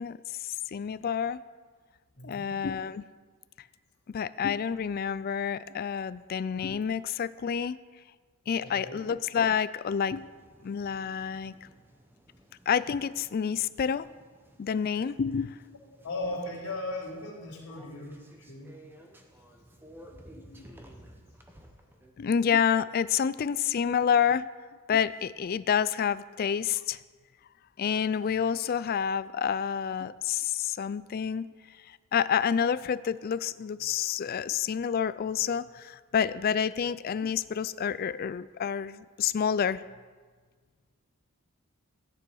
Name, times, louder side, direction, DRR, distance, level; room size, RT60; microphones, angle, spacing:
voice 1, 0.0-1.4 2.2-3.0 4.1-7.8 8.5-10.3 10.6-11.5 12.7-14.1 14.6-15.6 20.4-20.7 22.2-24.5 24.9-27.0 27.8-31.5 31.9-39.8, left 7 dB, 45° left, 16 dB, 0.3 m, -28 dB
voice 2, 2.1-2.5 8.6-9.1 16.0-18.7, left 2 dB, 75° left, -7 dB, 3.1 m, -37 dB
sound 1, 10.1-22.1, right 1 dB, 10° right, 0.9 m, -55 dB
14.0 x 9.5 x 4.7 m, 1.5 s
head